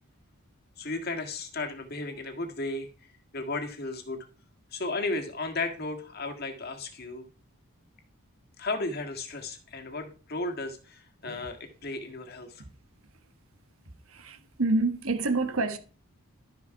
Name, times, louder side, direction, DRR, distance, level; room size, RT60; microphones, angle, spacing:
voice 1, 0.8-4.2 4.7-7.2 8.6-12.6, left 2 dB, 45° left, 1.8 m, -34 dB
voice 2, 14.1-15.8, right 3 dB, 70° right, 1.4 m, -28 dB
12.0 x 5.9 x 5.7 m
head